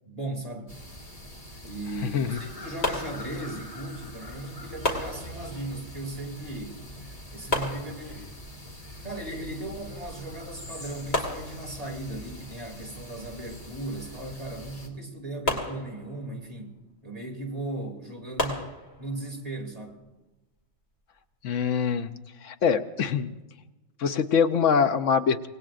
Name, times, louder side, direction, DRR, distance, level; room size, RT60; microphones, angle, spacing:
voice 1, 0.0-0.7 1.6-6.9 7.3-8.3 9.0-16.7 17.0-18.7 19.0-20.0, right 2 dB, 30° right, 0 dB, 2.6 m, -37 dB
sound 1, 0.7-14.9, equal, 30° left, 2.0 m, -43 dB
voice 2, 2.0-2.4 21.4-22.1 22.4-23.3 24.0-25.5, left 6 dB, 80° left, 10 dB, 1.1 m, -24 dB
sound 2, 2.8-3.8 4.8-5.8 7.5-8.5 10.1-10.2 10.6-10.7 11.1-12.2 15.5-16.5 18.4-19.3, left 2 dB, 55° left, 2.5 m, -32 dB
25.0 x 19.5 x 2.5 m, 1.1 s
omnidirectional pair, 1.3 m